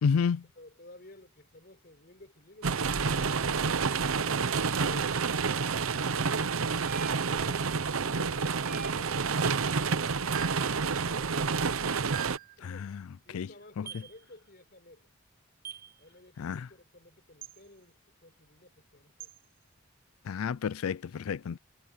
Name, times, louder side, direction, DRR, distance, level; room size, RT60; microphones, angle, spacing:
voice 1, 0.0-0.4 12.6-13.0 13.3-13.5 13.8-13.9 16.4-16.7 20.3-21.6, left 6 dB, 90° left, 0.4 m, -30 dB
voice 2, 0.6-3.6 11.0-11.7 12.6-12.9 13.2-15.1 16.0-19.5, left 1 dB, 50° left, 4.3 m, -53 dB
sound 1, 2.6-12.4, right 5 dB, 85° right, 0.8 m, -29 dB
sound 2, 6.9-7.5 8.7-9.3 10.3-10.8 12.1-12.5 13.9-14.1 15.6-15.9 17.4-17.6 19.2-19.4, right 8 dB, 45° right, 1.0 m, -42 dB
head